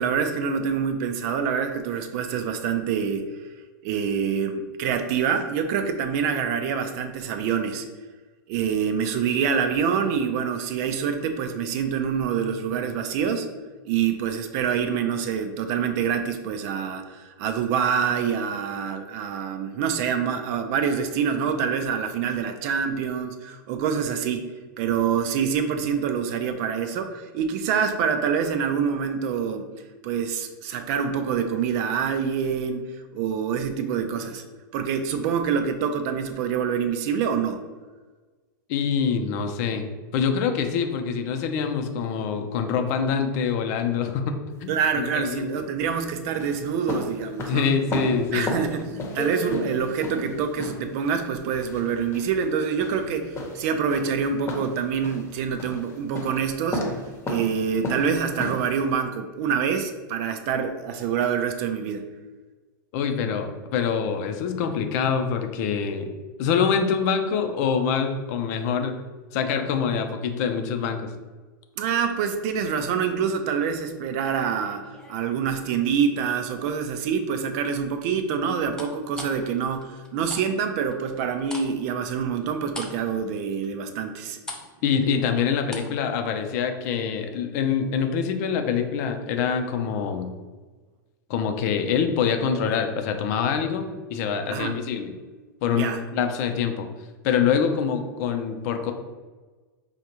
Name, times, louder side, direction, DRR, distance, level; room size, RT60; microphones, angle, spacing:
voice 1, 0.0-3.3 3.8-7.9 8.5-13.5 13.8-29.7 30.0-32.9 33.1-34.4 34.7-37.6 44.7-47.7 48.3-56.8 57.2-62.1 71.8-84.4 94.5-94.7 95.7-96.0, right 7 dB, 50° right, 8 dB, 0.5 m, -26 dB
voice 2, 38.7-39.8 40.1-44.3 44.6-45.5 47.5-48.5 62.9-66.1 66.4-68.9 69.3-71.1 84.8-90.3 91.3-95.1 95.6-96.9 97.2-98.9, left 6 dB, 55° left, 6 dB, 0.6 m, -25 dB
sound 1, 44.5-58.9, left 1 dB, 25° left, 0.9 m, -34 dB
sound 2, 74.3-76.1 76.5-77.0 78.7-80.5 80.7-86.0 86.3-86.4, left 2 dB, 5° left, 0.6 m, -41 dB
5.2 x 2.4 x 2.9 m, 1.3 s
hypercardioid pair, 110°, 11 cm